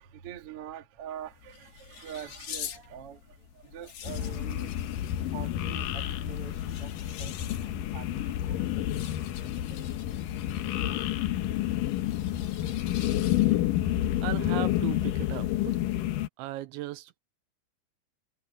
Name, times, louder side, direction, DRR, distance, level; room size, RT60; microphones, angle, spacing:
voice 1, 0.0-4.8 5.2-10.0 10.3-11.0, right 9 dB, 55° right, 1.6 m, -46 dB
sound 1, 1.0-13.8, left 9 dB, 65° left, 3.9 m, -47 dB
sound 2, 4.0-16.3, left 13 dB, 80° left, 1.9 m, -29 dB
voice 2, 14.2-15.8 16.4-17.2, right 16 dB, 85° right, 3.1 m, -36 dB
omnidirectional pair, 5.3 m